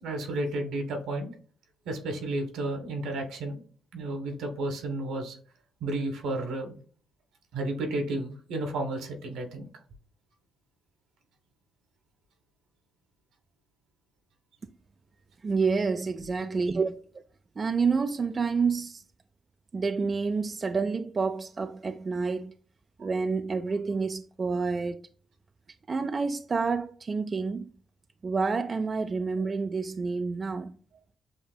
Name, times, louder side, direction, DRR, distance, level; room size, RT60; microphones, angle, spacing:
voice 1, 0.0-1.3 1.8-3.6 3.9-5.4 5.8-6.8 7.5-9.7 16.4-16.5, right 2 dB, 85° right, 1.3 m, -32 dB
voice 2, 15.4-17.0 17.6-19.0 19.7-22.5 23.0-25.0 25.9-27.7 28.2-30.7, right 4 dB, 35° right, 0.3 m, -28 dB
6.8 x 2.7 x 2.2 m
cardioid pair, 90°, 0 cm